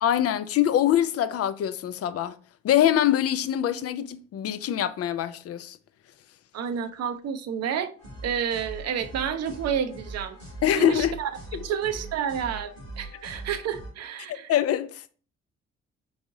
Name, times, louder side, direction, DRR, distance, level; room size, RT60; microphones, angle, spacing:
voice 1, 0.0-2.4 2.6-5.8 10.6-11.1 11.5-11.6 14.3-15.2, left 11 dB, 45° left, 0.5 m, -24 dB
voice 2, 6.5-7.9 8.2-10.4 10.8-11.3 11.6-14.5, right 8 dB, 50° right, 0.6 m, -30 dB
sound 1, 8.0-13.9, right 3 dB, 85° right, 1.8 m, -41 dB
3.9 x 3.5 x 2.7 m
hypercardioid pair, 40°, 33 cm